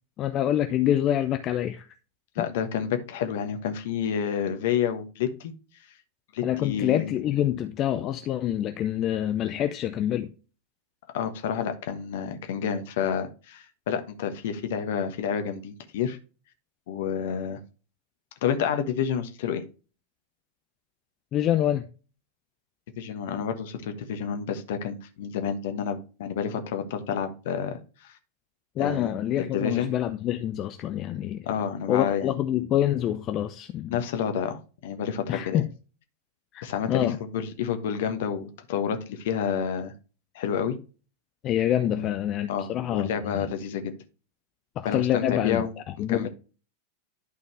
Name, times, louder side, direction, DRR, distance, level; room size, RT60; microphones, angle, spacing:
voice 1, 0.2-1.9 6.4-10.3 21.3-21.8 28.8-31.5 31.9-34.0 35.3-35.7 36.5-37.2 41.4-43.5 44.8-45.7 46.0-46.3, left 11 dB, 35° left, 0.6 m, -26 dB
voice 2, 2.3-5.5 6.3-7.2 11.1-16.2 16.9-17.6 18.4-19.6 23.0-28.1 28.8-29.1 29.4-29.9 31.5-32.3 33.9-35.6 36.6-39.9 40.3-40.8 41.9-42.1 42.5-43.9 44.8-45.7 46.1-46.3, left 7 dB, 55° left, 1.2 m, -29 dB
11.5 x 4.2 x 3.3 m
figure-of-eight pair, 90°, 0 cm